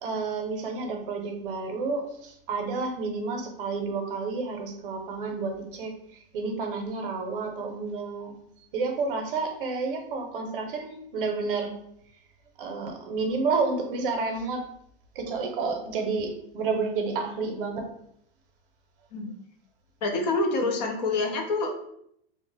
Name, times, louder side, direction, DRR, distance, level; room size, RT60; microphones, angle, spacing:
voice 1, 0.0-8.4 8.7-11.7 12.6-14.6 15.1-17.9, right 4 dB, 60° right, 3 dB, 0.7 m, -30 dB
voice 2, 20.0-21.7, left 3 dB, 45° left, 3 dB, 0.5 m, -26 dB
2.8 x 2.1 x 3.2 m, 0.71 s
supercardioid pair, 175°, 30 cm